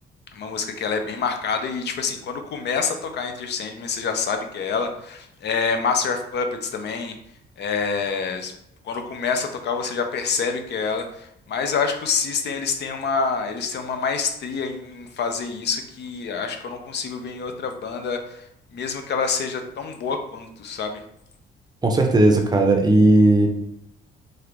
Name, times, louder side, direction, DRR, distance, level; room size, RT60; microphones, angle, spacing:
voice 1, 0.3-7.1 7.6-8.5 8.8-18.4 18.7-21.0, left 5 dB, 60° left, 6 dB, 0.5 m, -27 dB
voice 2, 21.8-23.5, right 2 dB, 20° right, 3 dB, 0.6 m, -16 dB
3.1 x 2.5 x 3.0 m, 0.77 s
cardioid pair, 90°, 20 cm